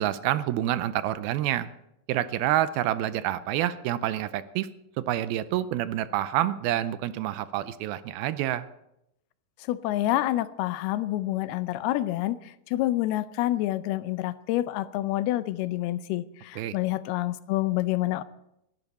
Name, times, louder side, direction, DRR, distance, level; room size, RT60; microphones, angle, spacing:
voice 1, 0.0-1.7 2.1-4.7 5.0-8.7 16.6-16.8, right 13 dB, 80° right, 14 dB, 2.4 m, -28 dB
voice 2, 9.7-12.4 12.7-18.2, left 15 dB, 85° left, 14 dB, 2.6 m, -27 dB
21.0 x 12.5 x 4.2 m, 0.82 s
omnidirectional pair, 4.5 m